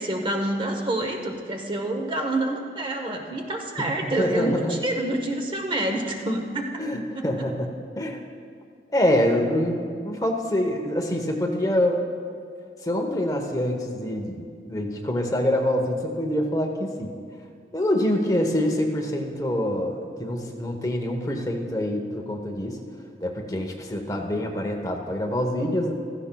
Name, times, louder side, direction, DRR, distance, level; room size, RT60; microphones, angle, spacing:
voice 1, 0.0-6.7 7.1-7.2, right 1 dB, 30° right, 2 dB, 0.8 m, -27 dB
voice 2, 3.8-4.7 6.8-7.7 8.0-8.3 8.9-12.0 12.8-17.1 17.7-22.8 23.2-25.9, left 1 dB, 20° left, 2 dB, 0.8 m, -25 dB
16.0 x 14.0 x 2.3 m, 2.2 s
head